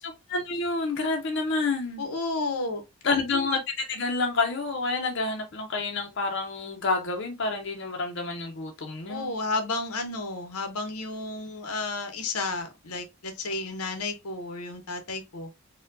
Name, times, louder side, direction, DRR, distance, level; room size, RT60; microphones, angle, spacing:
voice 1, 0.0-2.0 3.0-9.3, left 3 dB, 55° left, 0.6 m, -29 dB
voice 2, 2.0-2.8 9.1-15.5, left 3 dB, 90° left, 0.8 m, -32 dB
4.3 x 2.2 x 2.5 m
head